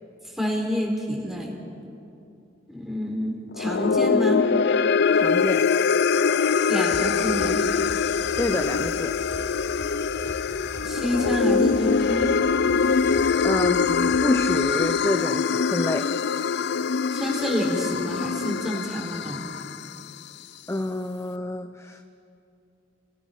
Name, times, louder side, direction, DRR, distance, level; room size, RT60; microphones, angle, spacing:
voice 1, 0.4-1.5 2.7-4.4 6.7-7.6 10.8-12.4 17.1-19.4, equal, ahead, -1 dB, 3.9 m, -28 dB
sound 1, 3.5-20.0, left 5 dB, 60° left, 0.4 m, -23 dB
voice 2, 5.1-5.7 8.4-9.1 13.4-16.1 20.7-22.0, left 1 dB, 15° left, 8 dB, 0.6 m, -28 dB
sound 2, 6.9-14.6, equal, 20° right, 3.9 m, -41 dB
29.5 x 19.5 x 5.9 m, 2.7 s
head